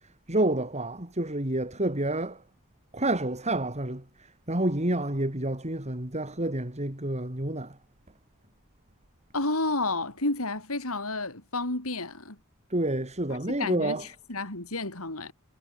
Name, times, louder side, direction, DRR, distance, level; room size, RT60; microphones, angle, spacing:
voice 1, 0.3-2.4 2.9-4.0 4.5-7.8 12.7-14.0, right 1 dB, 30° right, 4.2 m, -28 dB
voice 2, 9.3-12.4 13.3-15.3, left 2 dB, 70° left, 5.8 m, -31 dB
head